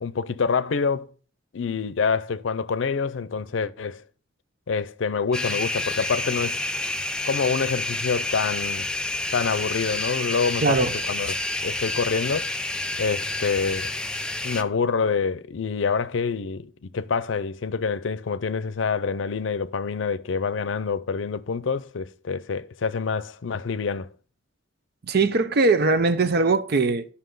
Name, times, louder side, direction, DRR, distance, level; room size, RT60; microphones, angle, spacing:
voice 1, 0.0-1.1 1.5-4.0 4.7-6.6 7.2-8.9 9.3-10.8 11.1-11.3 11.6-12.5 13.0-13.9 14.4-24.1, left 5 dB, 85° left, 0.5 m, -26 dB
sound 1, 5.3-14.6, left 2 dB, 5° left, 0.4 m, -29 dB
voice 2, 10.6-10.9 25.0-27.1, right 3 dB, 55° right, 0.6 m, -20 dB
11.5 x 5.7 x 3.8 m
head